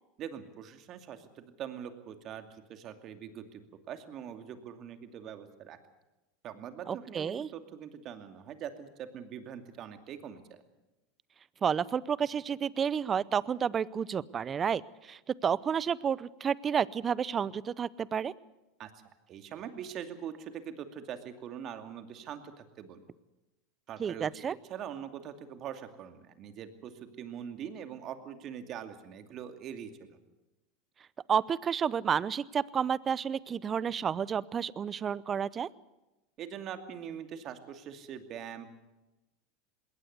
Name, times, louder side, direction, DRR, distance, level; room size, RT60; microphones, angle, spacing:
voice 1, 0.2-3.6 3.9-5.8 6.4-10.4 18.8-18.9 19.3-23.1 23.9-24.3 24.7-30.2 36.4-38.7, right 8 dB, 45° right, 8 dB, 2.5 m, -43 dB
voice 2, 6.9-7.5 11.6-18.3 24.0-24.6 31.3-35.7, right 7 dB, 30° right, 21 dB, 0.7 m, -30 dB
21.0 x 18.0 x 8.2 m, 1.0 s
hypercardioid pair, 100°, 0 cm